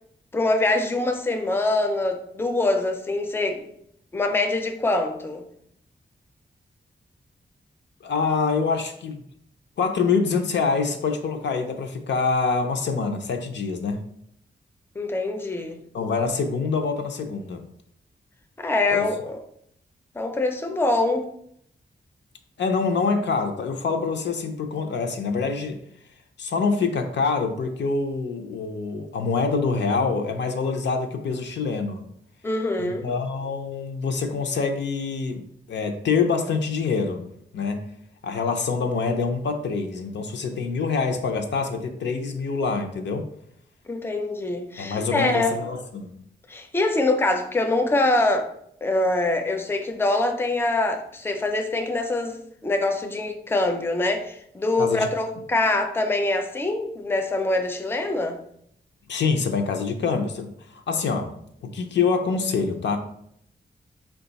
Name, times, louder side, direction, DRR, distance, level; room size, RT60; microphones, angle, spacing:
voice 1, 0.3-3.7 4.1-5.4 15.0-15.8 18.6-19.4 20.2-21.3 32.4-33.1 43.9-45.6 46.5-48.5 48.8-58.4, left 2 dB, 10° left, 5 dB, 0.4 m, -24 dB
voice 2, 8.0-9.2 9.8-14.0 15.9-17.6 18.9-19.1 22.6-25.8 26.4-32.0 32.8-37.3 37.5-37.8 38.2-43.3 44.8-46.1 54.8-55.1 59.1-61.3 61.6-63.0, left 4 dB, 85° left, 5 dB, 0.5 m, -25 dB
4.5 x 2.3 x 3.9 m, 0.70 s
wide cardioid pair, 145°, 18 cm